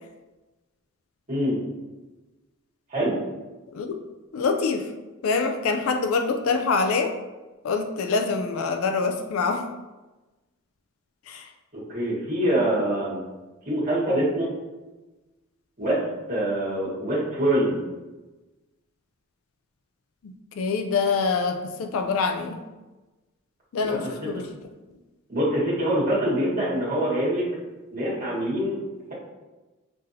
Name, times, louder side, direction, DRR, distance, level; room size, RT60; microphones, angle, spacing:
voice 1, 1.3-1.6 2.9-3.1 11.7-13.2 13.6-14.5 15.8-16.0 16.3-17.8 23.8-24.1 25.3-27.5 27.9-28.8, right 1 dB, 40° right, -7 dB, 1.4 m, -24 dB
voice 2, 4.3-4.9 5.2-7.2 7.6-9.7 11.3-11.5 20.2-22.6 23.7-24.5, left 4 dB, 75° left, 5 dB, 0.3 m, -25 dB
5.4 x 2.6 x 2.7 m, 1.1 s
head